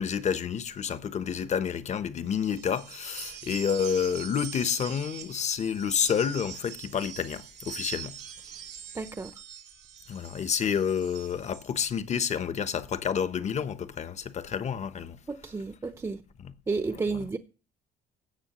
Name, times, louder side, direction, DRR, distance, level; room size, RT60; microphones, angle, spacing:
voice 1, 0.0-8.2 10.1-15.2 16.4-16.5 17.1-17.2, left 7 dB, 40° left, 1.0 m, -29 dB
sound 1, 2.3-11.7, right 10 dB, 80° right, 2.5 m, -43 dB
voice 2, 8.9-9.3 15.3-16.2 16.7-17.4, right 4 dB, 20° right, 0.7 m, -31 dB
16.0 x 6.3 x 3.0 m
cardioid pair, 110°, 17 cm